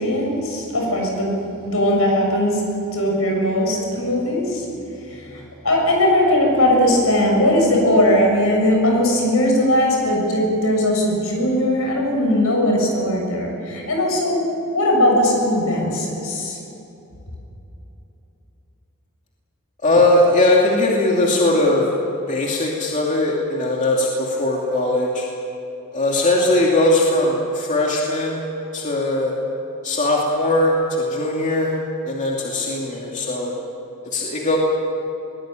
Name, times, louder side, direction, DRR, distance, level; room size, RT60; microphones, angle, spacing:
voice 1, 0.0-2.6 2.9-4.7 5.0-14.4 14.7-16.6, left 1 dB, 75° left, 1 dB, 7.1 m, -19 dB
voice 2, 19.8-21.9 22.3-25.3 25.9-28.5 28.7-29.3 29.8-31.8 32.1-33.5 34.0-34.6, left 2 dB, 35° left, -2 dB, 2.6 m, -19 dB
22.5 x 20.0 x 9.1 m, 3.0 s
head